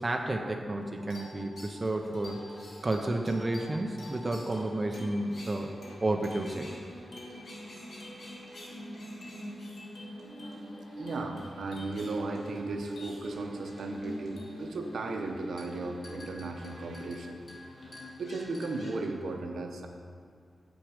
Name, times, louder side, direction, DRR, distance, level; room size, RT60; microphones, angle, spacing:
voice 1, 0.0-2.4 2.8-6.7, right 2 dB, 20° right, 2 dB, 0.4 m, -31 dB
sound 1, 0.8-19.1, left 1 dB, 50° left, 1.4 m, -45 dB
voice 2, 10.1-17.4 18.2-19.9, right 3 dB, 70° right, 4 dB, 0.7 m, -36 dB
7.1 x 6.2 x 4.9 m, 2.2 s
wide cardioid pair, 180°, 0 cm